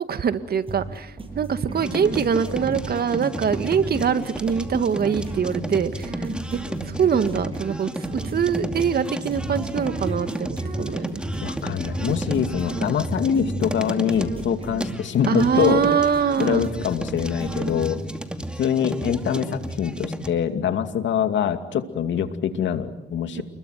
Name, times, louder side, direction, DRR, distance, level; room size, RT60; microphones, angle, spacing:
voice 1, 0.1-11.1 15.3-16.7 23.4-23.5, right 7 dB, 50° right, 10 dB, 1.9 m, -24 dB
sound 1, 0.7-18.2, right 2 dB, 25° right, 7.8 m, -36 dB
sound 2, 1.8-20.3, right 1 dB, 5° right, 2.5 m, -32 dB
voice 2, 11.4-15.8 16.4-18.0 18.6-23.4, left 8 dB, 70° left, 8 dB, 2.6 m, -24 dB
29.5 x 21.5 x 9.3 m, 0.94 s
cardioid pair, 90°, 20 cm